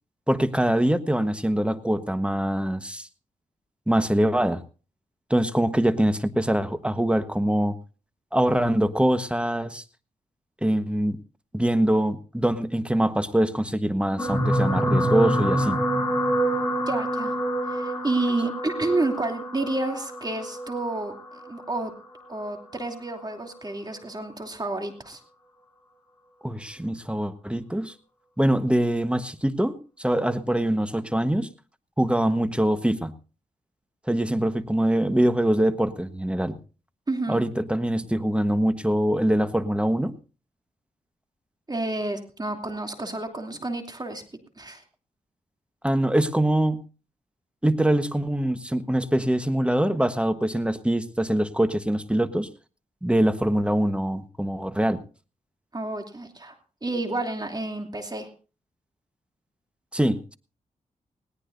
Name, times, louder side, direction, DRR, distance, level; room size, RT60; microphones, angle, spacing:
voice 1, 0.3-3.1 3.9-4.6 5.3-7.8 8.3-9.8 10.6-11.2 11.5-15.8 26.4-27.9 28.4-31.5 32.0-33.1 34.1-36.6 37.3-40.2 45.8-46.8 47.6-52.5 53.0-55.0 59.9-60.3, right 1 dB, 5° right, 11 dB, 1.2 m, -23 dB
sound 1, 14.2-22.6 23.4-23.6 23.9-24.0, equal, 15° left, 8.0 m, -27 dB
voice 2, 16.9-17.4 17.7-21.2 21.5-21.9 22.3-25.2 37.1-37.4 41.7-44.2 44.6-44.8 55.7-56.5 56.8-58.3, right 2 dB, 30° right, 4 dB, 2.8 m, -30 dB
20.0 x 18.0 x 2.7 m, 0.35 s
cardioid pair, 65°, 15 cm